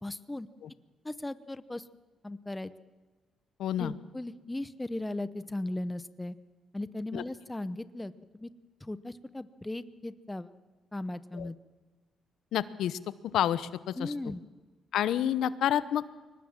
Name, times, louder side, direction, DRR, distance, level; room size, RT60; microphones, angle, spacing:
voice 1, 0.0-0.5 1.0-1.9 2.2-2.7 3.8-6.4 6.7-8.5 8.8-10.5 10.9-11.6 14.0-14.4, left 1 dB, 10° left, 14 dB, 0.9 m, -37 dB
voice 2, 3.6-3.9 7.1-7.2 11.4-11.5 12.5-13.0 13.3-14.1 14.9-16.0, left 11 dB, 75° left, 16 dB, 0.9 m, -29 dB
23.5 x 19.0 x 7.5 m, 1.3 s
cardioid pair, 90°, 0 cm